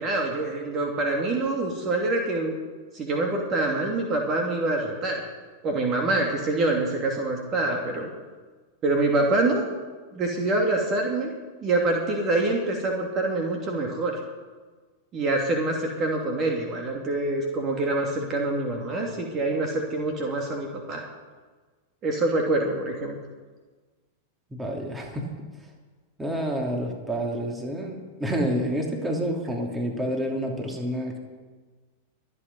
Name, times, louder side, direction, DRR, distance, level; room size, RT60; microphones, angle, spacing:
voice 1, 0.0-2.5 2.9-5.2 5.6-8.1 8.8-9.7 10.1-14.1 15.1-21.0 22.0-23.2, right 2 dB, 35° right, 1 dB, 2.7 m, -25 dB
voice 2, 24.5-25.3 26.2-31.2, equal, 10° right, 1 dB, 3.0 m, -28 dB
24.5 x 8.9 x 5.5 m, 1.4 s
figure-of-eight pair, 95°, 0 cm